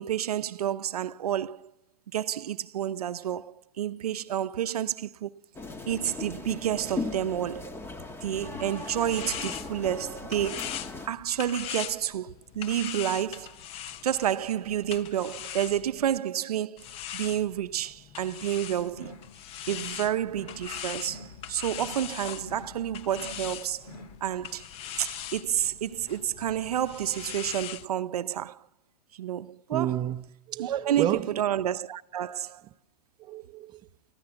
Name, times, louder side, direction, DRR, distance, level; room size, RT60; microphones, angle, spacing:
voice 1, 0.0-1.7 2.1-5.3 5.9-7.9 8.2-13.6 14.0-16.9 17.1-19.2 19.7-23.9 24.2-24.7 25.0-28.7 29.1-30.0 30.6-32.6, right 10 dB, 75° right, 0.7 m, -30 dB
sound 1, 5.5-11.1, left 3 dB, 10° left, 1.3 m, -38 dB
sound 2, 8.4-16.2 16.8-27.9, left 10 dB, 30° left, 0.8 m, -41 dB
sound 3, 18.9-19.3 19.6-20.0 20.3-20.7 21.0-21.4 21.7-22.1 22.4-22.8 23.1-23.5 23.8-24.2, left 1 dB, 70° left, 2.2 m, -47 dB
voice 2, 29.7-31.4 33.2-33.8, right 12 dB, 25° right, 0.7 m, -31 dB
29.0 x 14.5 x 7.0 m
hypercardioid pair, 130°, 20 cm